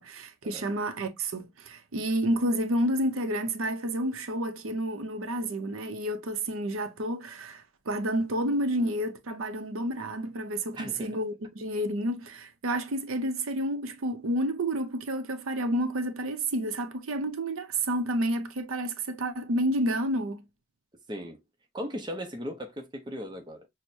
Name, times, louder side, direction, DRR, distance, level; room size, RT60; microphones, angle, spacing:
voice 1, 0.0-20.4, right 1 dB, 85° right, 0.7 m, -30 dB
voice 2, 10.8-11.2 21.1-21.4 21.7-23.7, equal, 20° right, 0.7 m, -37 dB
6.1 x 2.1 x 2.6 m
head